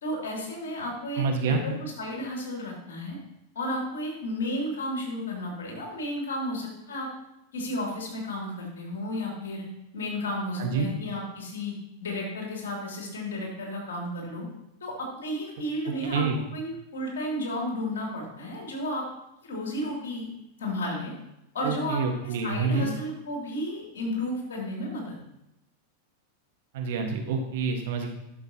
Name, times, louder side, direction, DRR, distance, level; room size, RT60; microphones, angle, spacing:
voice 1, 0.0-3.2 3.5-7.1 7.5-9.7 9.9-11.7 12.0-14.5 14.8-16.2 16.5-19.0 19.4-20.3 20.6-21.1 21.5-25.1, left 1 dB, 70° left, -1 dB, 2.6 m, -33 dB
voice 2, 1.2-1.6 10.6-10.9 16.1-16.4 21.6-22.9 26.7-28.1, right 4 dB, 60° right, 3 dB, 1.4 m, -27 dB
11.0 x 6.8 x 2.8 m, 0.88 s
figure-of-eight pair, 90°, 0 cm